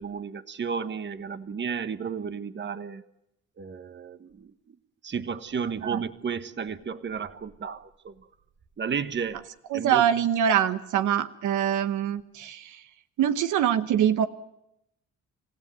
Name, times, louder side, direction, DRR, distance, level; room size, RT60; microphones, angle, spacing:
voice 1, 0.0-3.0 3.6-4.5 5.0-8.1 8.8-9.4 9.7-10.1, right 6 dB, 40° right, 11 dB, 1.3 m, -33 dB
voice 2, 9.7-12.8 13.2-14.3, right 9 dB, 80° right, 10 dB, 1.1 m, -24 dB
27.0 x 16.0 x 9.4 m, 0.85 s
cardioid pair, 90°, 30 cm